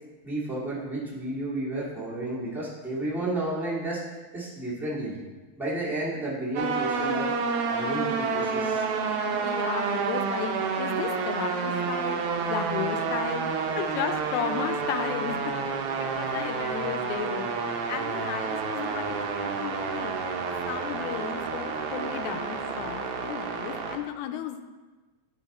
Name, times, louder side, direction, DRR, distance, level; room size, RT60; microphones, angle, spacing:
voice 1, 0.2-4.0 4.3-5.2 5.6-7.3 7.7-8.8, right 2 dB, ahead, -9 dB, 1.7 m, -31 dB
sound 1, 6.6-24.0, right 5 dB, 75° right, 1.5 m, -29 dB
voice 2, 9.4-10.5 10.8-12.2 12.5-13.5 13.8-15.5 16.0-17.5 17.9-20.2 20.7-24.6, left 10 dB, 85° left, 8 dB, 2.0 m, -34 dB
10.0 x 4.7 x 4.1 m, 1.2 s
omnidirectional pair, 3.4 m